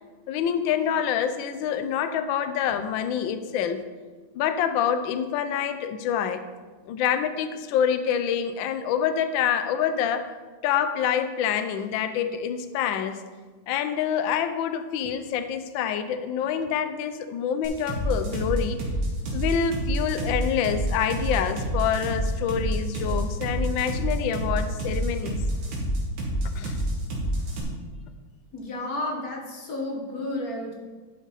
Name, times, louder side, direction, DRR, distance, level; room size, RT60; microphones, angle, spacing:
voice 1, 0.3-3.8 4.3-6.4 6.9-10.3 10.6-13.2 13.7-18.8 19.3-25.4 26.6-26.8, left 8 dB, 75° left, 10 dB, 1.3 m, -26 dB
sound 1, 17.6-27.6, right 1 dB, 75° right, 2.5 m, -27 dB
voice 2, 28.5-30.7, left 1 dB, 50° left, 0 dB, 1.5 m, -32 dB
11.5 x 5.4 x 4.1 m, 1.4 s
omnidirectional pair, 2.3 m